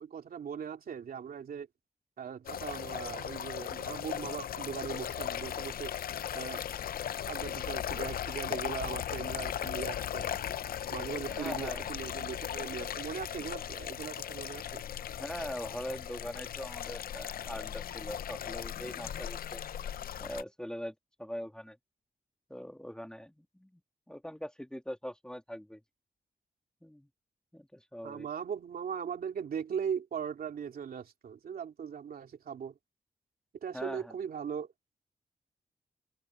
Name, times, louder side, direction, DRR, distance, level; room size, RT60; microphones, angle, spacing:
voice 1, 0.0-1.7 2.2-5.9 6.3-6.7 7.3-10.3 10.9-14.8 28.0-32.8 33.6-34.7, right 7 dB, 85° right, 2.9 m, -39 dB
sound 1, 2.5-20.4, left 10 dB, 90° left, 0.5 m, -37 dB
voice 2, 11.3-11.9 15.2-19.6 20.2-21.8 22.5-23.8 24.1-25.8 26.8-27.1 27.5-28.3 33.7-34.2, equal, 5° left, 1.7 m, -42 dB
cardioid pair, 80°, 15 cm